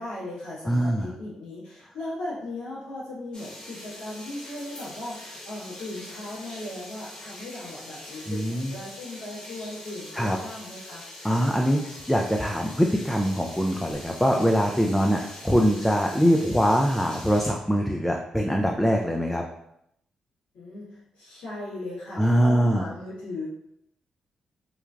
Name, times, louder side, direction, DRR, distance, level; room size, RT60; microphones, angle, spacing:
voice 1, 0.0-11.2 20.5-23.5, left 1 dB, 85° left, -9 dB, 1.3 m, -37 dB
voice 2, 0.7-1.1 8.3-8.7 10.1-10.4 11.2-11.8 12.1-19.4 22.2-22.8, equal, 5° left, 1 dB, 0.3 m, -23 dB
sound 1, 3.3-17.5, left 1 dB, 45° left, 1.1 m, -43 dB
3.1 x 2.3 x 2.4 m, 0.76 s
supercardioid pair, 50°, 2 cm